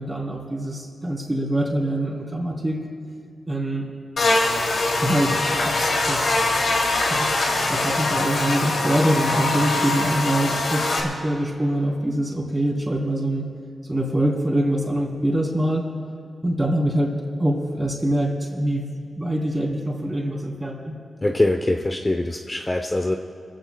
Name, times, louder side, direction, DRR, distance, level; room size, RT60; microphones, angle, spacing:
voice 1, 0.0-2.8 3.5-3.9 5.0-5.7 6.1-6.5 6.9-13.5 13.9-15.8 16.4-17.1 17.4-21.0, right 1 dB, 15° right, -1 dB, 3.5 m, -24 dB
Buzz, 4.2-11.0, left 2 dB, 70° left, 2.9 m, -22 dB
voice 2, 21.2-23.2, left 2 dB, 25° left, 3 dB, 0.8 m, -23 dB
25.0 x 15.5 x 2.3 m, 2.4 s
cardioid pair, 75°, 0 cm